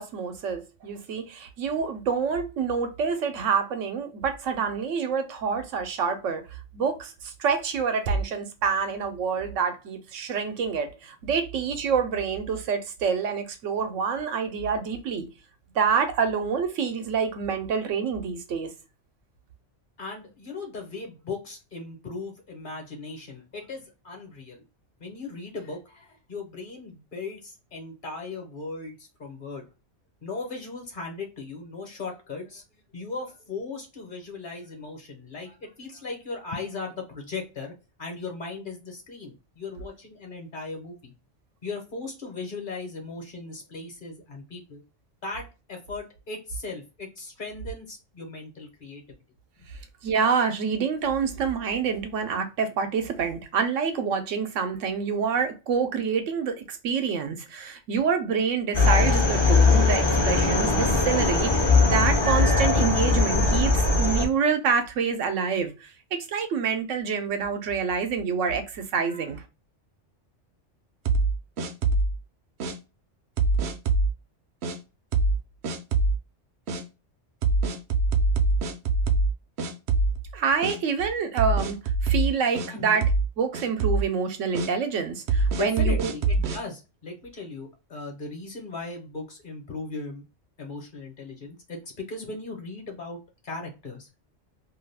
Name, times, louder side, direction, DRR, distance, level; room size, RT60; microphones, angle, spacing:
voice 1, 0.0-6.4 6.7-15.3 15.8-18.7 50.0-69.4 80.3-81.8 82.0-83.0 83.4-86.1, right 6 dB, 85° right, 1.0 m, -27 dB
voice 2, 20.0-24.6 25.0-29.7 30.2-32.6 32.9-37.7 38.0-41.1 41.6-44.8 45.2-49.0 82.7-83.0 85.6-90.2 90.6-93.2 93.4-94.1, left 3 dB, 45° left, 1.1 m, -37 dB
sound 1, 58.7-64.3, left 3 dB, 30° left, 0.6 m, -20 dB
sound 2, 71.0-72.2 72.6-72.7 73.4-74.1 74.6-74.8 75.1-75.4 75.6-76.2 76.7-76.8 77.4-79.3 79.6-80.3 80.6-80.8 81.4-82.7 83.0-83.3 83.5-84.1 84.5-84.7 85.3-86.6, right 3 dB, 65° right, 0.8 m, -24 dB
2.6 x 2.4 x 3.3 m
omnidirectional pair, 1.3 m